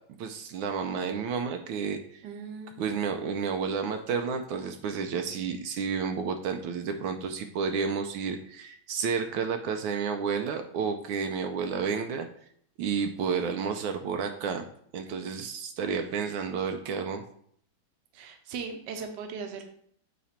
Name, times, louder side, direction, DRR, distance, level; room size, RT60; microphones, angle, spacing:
voice 1, 0.2-2.3 2.8-12.3 12.8-14.6 14.9-17.2, right 6 dB, 80° right, 6 dB, 1.4 m, -31 dB
voice 2, 2.2-2.8 18.1-19.6, right 5 dB, 65° right, 6 dB, 1.4 m, -38 dB
8.3 x 4.2 x 4.3 m, 0.65 s
omnidirectional pair, 2.2 m